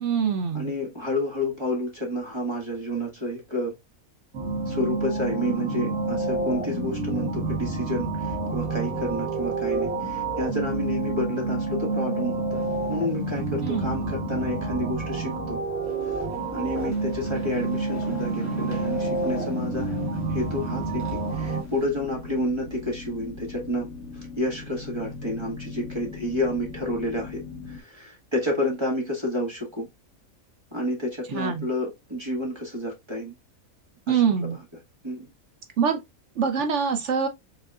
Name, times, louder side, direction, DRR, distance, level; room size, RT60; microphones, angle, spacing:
voice 1, 0.0-0.7 13.6-13.9 31.3-31.7 34.1-34.6 35.8-36.0 36.4-37.3, right 6 dB, 60° right, 1.0 m, -24 dB
voice 2, 0.5-3.8 4.7-15.6 16.0-16.3 16.5-20.0 20.3-23.9 24.4-27.4 27.7-29.9 30.7-33.3 34.1-34.5 35.0-35.3, left 1 dB, 20° right, 1.6 m, -30 dB
sound 1, 4.3-21.6, right 3 dB, 80° right, 1.9 m, -29 dB
sound 2, 12.5-14.0 14.3-14.4 15.8-21.9, left 2 dB, 10° left, 1.7 m, -45 dB
sound 3, 18.0-27.8, left 3 dB, 55° left, 1.3 m, -40 dB
5.5 x 3.5 x 2.3 m
omnidirectional pair, 1.5 m